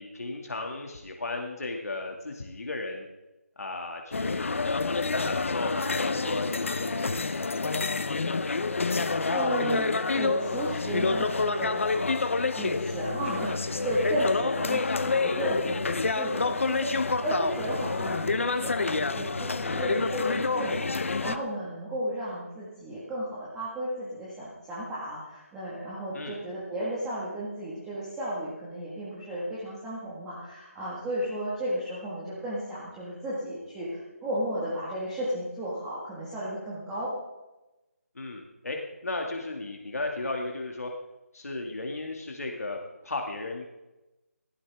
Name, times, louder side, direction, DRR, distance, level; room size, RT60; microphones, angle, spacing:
voice 1, 0.0-3.1 3.6-7.9 26.1-26.4 38.1-38.8 39.0-40.9 41.3-42.8 43.0-43.7, left 2 dB, 75° left, 1 dB, 2.4 m, -35 dB
sound 1, 4.1-21.4, left 3 dB, 55° left, 0.9 m, -28 dB
voice 2, 9.0-11.8 12.6-37.1, right 1 dB, 5° right, -9 dB, 1.8 m, -34 dB
18.0 x 15.5 x 3.6 m, 1.0 s
figure-of-eight pair, 175°, 8 cm